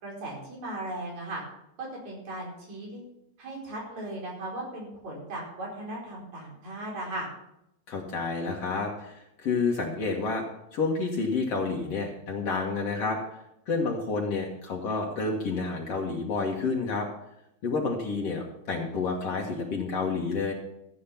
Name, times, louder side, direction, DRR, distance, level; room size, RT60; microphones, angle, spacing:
voice 1, 0.0-1.4 1.8-3.0 3.4-7.3, right 1 dB, 70° right, -2 dB, 5.8 m, -37 dB
voice 2, 7.9-10.4 10.7-13.2 13.7-17.1 17.6-20.5, left 4 dB, 60° left, -1 dB, 2.6 m, -29 dB
14.0 x 8.5 x 5.8 m, 0.81 s
omnidirectional pair, 3.3 m